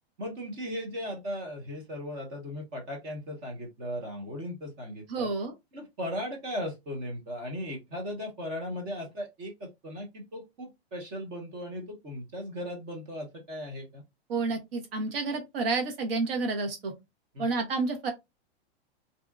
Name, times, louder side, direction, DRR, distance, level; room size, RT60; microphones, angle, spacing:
voice 1, 0.2-5.3 5.7-14.0 17.3-17.5, equal, 20° right, 0.7 m, -37 dB
voice 2, 5.1-5.5 14.3-16.9 17.4-18.1, right 3 dB, 60° right, 1.0 m, -30 dB
2.7 x 2.3 x 2.2 m
supercardioid pair, 170°, 32 cm